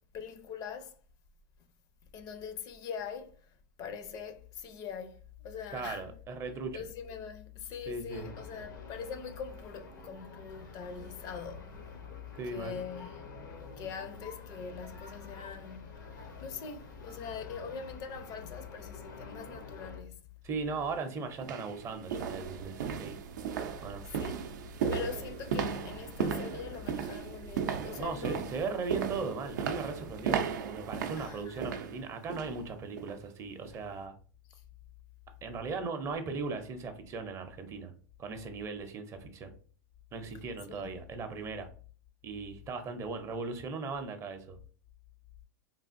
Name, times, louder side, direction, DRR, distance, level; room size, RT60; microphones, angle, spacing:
voice 1, 0.1-1.0 2.1-3.4 3.8-6.1 6.7-12.2 12.5-15.9 16.1-20.1 24.2-24.5 24.9-28.5 31.2-31.7 40.7-40.9, left 6 dB, 40° left, 0.5 m, -42 dB
voice 2, 5.7-6.8 7.9-8.3 12.3-12.8 20.4-23.2 23.8-24.0 28.0-34.2 35.4-37.9 38.2-39.5 40.1-41.7 42.2-44.6, right 4 dB, 30° right, 0.5 m, -38 dB
sound 1, 8.1-20.0, left 3 dB, 85° left, 0.8 m, -48 dB
sound 2, 20.7-20.8 21.3-32.6 33.0-33.2 33.7-33.8, right 7 dB, 80° right, 0.4 m, -36 dB
3.3 x 2.4 x 2.5 m
hypercardioid pair, 120°, 10 cm